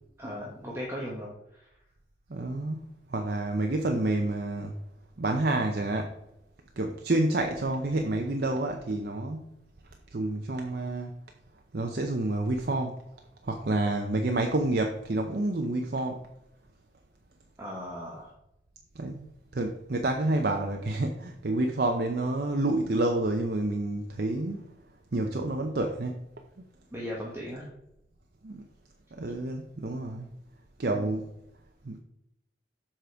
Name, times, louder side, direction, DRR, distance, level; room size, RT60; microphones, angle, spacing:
voice 1, 0.2-1.7 17.6-18.3 26.9-27.7 30.9-31.2, equal, 15° right, -3 dB, 1.1 m, -38 dB
voice 2, 2.3-2.8 3.1-4.7 5.2-6.1 6.8-9.4 10.1-11.1 11.7-13.0 13.4-16.2 19.0-19.3 19.5-24.7 25.1-26.2 28.4-28.6 29.1-30.3 30.8-31.3 31.8-32.0, right 2 dB, 55° right, 3 dB, 0.7 m, -29 dB
7.4 x 5.0 x 4.5 m, 0.83 s
head